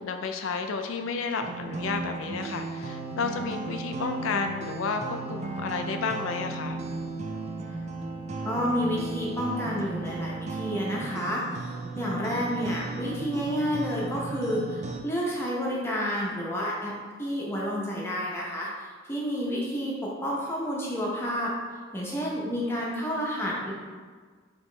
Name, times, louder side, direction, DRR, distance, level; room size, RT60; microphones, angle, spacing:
voice 1, 0.0-6.8, left 4 dB, 75° left, 6 dB, 0.4 m, -31 dB
sound 1, 1.4-15.0, right 3 dB, 35° right, 0.3 m, -35 dB
voice 2, 8.4-11.4 11.9-16.9 17.2-21.5 21.9-23.7, equal, 10° left, -4 dB, 0.7 m, -30 dB
5.2 x 2.9 x 3.2 m, 1.5 s
head